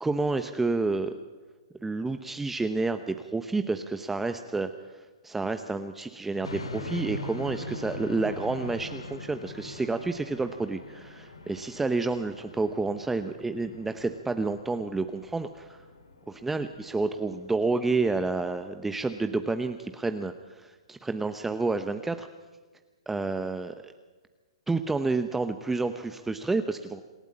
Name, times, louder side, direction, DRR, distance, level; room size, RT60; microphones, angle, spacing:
voice 1, 0.0-1.2 1.8-15.8 16.3-22.3 23.1-23.9 24.7-27.0, right 3 dB, 10° right, 8 dB, 0.9 m, -30 dB
sound 1, 6.4-19.5, left 2 dB, 85° left, 2.6 m, -42 dB
27.0 x 12.5 x 8.7 m, 1.3 s
hypercardioid pair, 120°, 3 cm